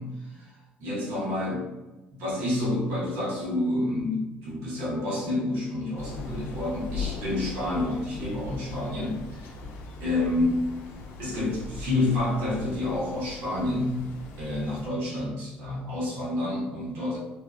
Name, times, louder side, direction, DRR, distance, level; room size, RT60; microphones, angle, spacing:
voice 1, 0.0-1.7 2.1-9.6 10.0-10.6 11.2-14.0 14.4-17.2, left 1 dB, 80° right, -6 dB, 1.1 m, -29 dB
Thunder / Rain, 6.0-14.9, left 4 dB, 70° left, 0.5 m, -39 dB
2.7 x 2.2 x 2.4 m, 1.1 s
supercardioid pair, 85°, 4 cm